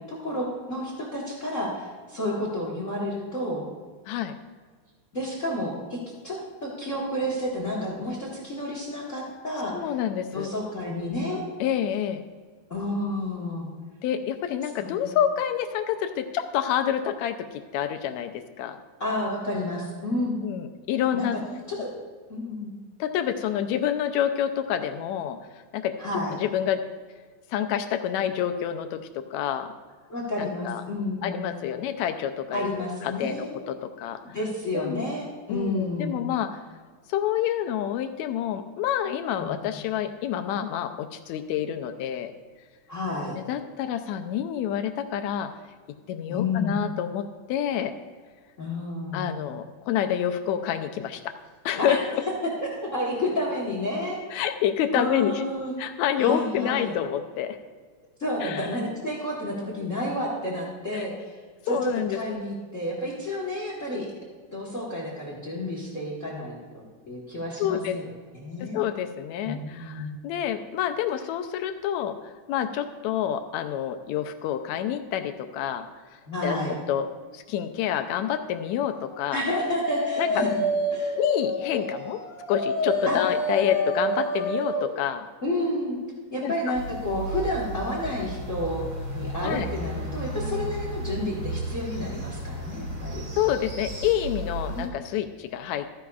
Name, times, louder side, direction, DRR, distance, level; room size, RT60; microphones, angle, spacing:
voice 1, 0.1-3.6 5.1-6.0 6.2-9.7 10.3-11.4 12.7-13.7 14.7-15.1 19.0-20.4 21.1-21.9 22.3-22.7 26.0-26.4 30.1-31.4 32.5-33.5 34.3-36.2 39.4-39.6 42.9-43.3 46.3-46.8 48.6-49.4 51.7-52.0 52.6-54.2 54.9-55.7 56.2-57.0 58.2-64.0 64.5-68.1 68.3-68.8 69.4-70.1 76.3-76.7 79.3-80.6 80.9-81.1 83.1-83.2 85.4-86.0 86.3-93.2 94.7-94.9, left 1 dB, 45° left, -3 dB, 1.0 m, -30 dB
voice 2, 4.1-4.4 9.7-10.5 11.6-12.2 14.0-18.8 20.4-21.4 23.0-25.9 26.4-26.8 27.5-29.7 30.4-30.8 31.2-34.4 34.7-35.1 35.5-36.6 37.1-42.3 43.5-45.5 46.1-47.9 49.1-51.3 51.6-52.0 54.3-55.4 55.8-57.6 58.4-58.7 60.9-61.1 61.7-62.4 67.6-68.0 68.6-75.9 76.4-76.6 76.9-77.1 77.3-79.4 80.2-80.4 81.2-82.2 82.5-85.3 86.4-86.5 89.4-89.7 93.3-95.9, left 10 dB, 80° left, 8 dB, 1.7 m, -28 dB
Dog, 79.4-84.9, equal, 60° left, 1.6 m, -28 dB
sound 1, 86.7-94.9, right 1 dB, 25° right, 0.9 m, -34 dB
14.0 x 10.0 x 2.3 m, 1.5 s
omnidirectional pair, 3.6 m